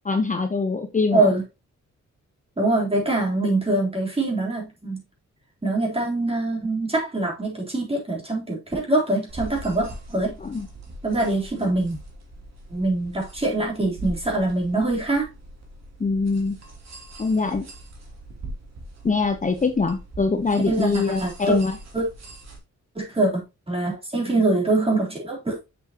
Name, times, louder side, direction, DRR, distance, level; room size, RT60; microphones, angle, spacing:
voice 1, 0.0-1.3 10.4-10.7 16.0-16.6 17.2-17.6 19.0-21.8, left 4 dB, 25° left, 0.9 m, -23 dB
voice 2, 2.6-5.0 5.6-10.4 11.0-12.0 12.7-15.3 20.7-20.9 21.2-21.6 21.9-22.1 23.0-23.4 23.7-25.6, right 2 dB, 20° right, 3.7 m, -24 dB
sound 1, 9.3-22.6, right 1 dB, 60° right, 2.9 m, -41 dB
7.2 x 7.1 x 3.0 m
wide cardioid pair, 120°, 30 cm